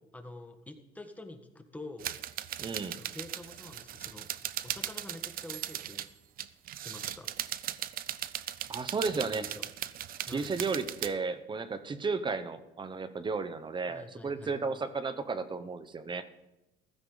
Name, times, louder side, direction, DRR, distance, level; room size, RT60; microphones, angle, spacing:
voice 1, 0.1-2.1 2.9-4.3 4.6-6.1 6.8-7.3 9.1-9.6 10.2-10.6 13.9-14.6, left 2 dB, 10° left, 5 dB, 1.5 m, -47 dB
sound 1, 2.0-6.1 6.4-11.1, right 12 dB, 60° right, 0.6 m, -38 dB
voice 2, 2.6-3.0 8.7-9.4 10.3-16.2, right 4 dB, 30° right, 12 dB, 0.9 m, -33 dB
15.0 x 12.5 x 4.0 m, 0.95 s
cardioid pair, 110°, 17 cm